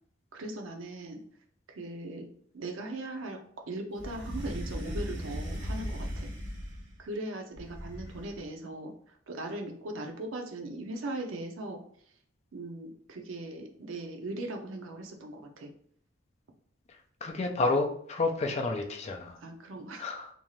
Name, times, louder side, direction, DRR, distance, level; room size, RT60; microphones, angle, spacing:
voice 1, 0.3-1.2 1.7-2.3 2.5-6.3 7.0-11.8 12.5-15.7 19.4-20.1, right 2 dB, 90° right, 3 dB, 0.5 m, -39 dB
sound 1, 4.0-7.0 7.5-8.4, equal, 65° right, 0.8 m, -37 dB
voice 2, 17.2-19.4 20.0-20.3, left 3 dB, 35° left, 4 dB, 0.4 m, -30 dB
2.6 x 2.3 x 3.0 m, 0.62 s
head